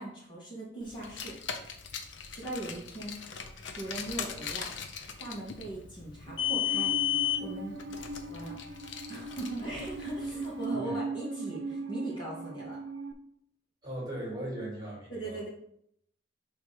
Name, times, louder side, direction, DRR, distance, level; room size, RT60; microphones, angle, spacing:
voice 1, 0.0-1.4 2.3-3.2 3.7-4.7 5.2-7.0 7.4-7.8 8.3-8.6 9.1-12.8 15.1-15.5, right 1 dB, 25° left, -6 dB, 2.1 m, -39 dB
Car, 1.0-10.5, left 10 dB, 85° left, 0.8 m, -35 dB
Musical instrument, 6.3-13.1, right 3 dB, 75° right, 0.8 m, -39 dB
voice 2, 13.8-15.4, right 1 dB, 25° right, -4 dB, 2.6 m, -38 dB
6.7 x 3.5 x 5.0 m, 0.72 s
head